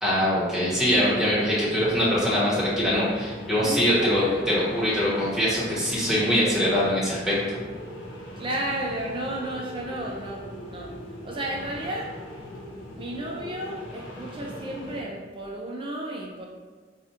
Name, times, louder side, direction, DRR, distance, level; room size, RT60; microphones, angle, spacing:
voice 1, 0.0-7.6, equal, ahead, -9 dB, 1.2 m, -23 dB
sound 1, 0.7-15.0, equal, 75° left, 0.7 m, -40 dB
voice 2, 3.6-4.3 8.4-10.9 11.2-12.1 12.9-16.5, right 1 dB, 30° right, -1 dB, 0.4 m, -33 dB
4.1 x 2.4 x 2.8 m, 1.4 s
head